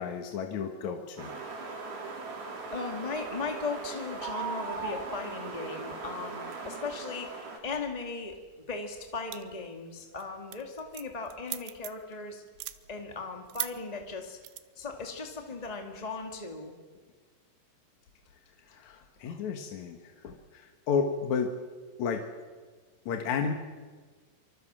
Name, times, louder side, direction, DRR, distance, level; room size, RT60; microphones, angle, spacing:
voice 1, 0.0-1.3 18.7-21.5 22.0-22.2 23.1-23.5, left 6 dB, 55° left, 4 dB, 2.3 m, -32 dB
sound 1, 1.2-7.6, right 4 dB, 60° right, 5.7 m, -39 dB
voice 2, 2.7-8.4 8.7-12.4 12.9-14.4 14.8-16.7 19.2-19.4, left 4 dB, 30° left, 3 dB, 0.7 m, -37 dB
sound 2, 9.3-9.7 10.0-10.2 10.5-12.1 12.5-12.8 13.5-13.7 14.4-14.6, right 16 dB, 85° right, 3.2 m, -37 dB
25.5 x 24.5 x 7.5 m, 1.4 s
omnidirectional pair, 4.9 m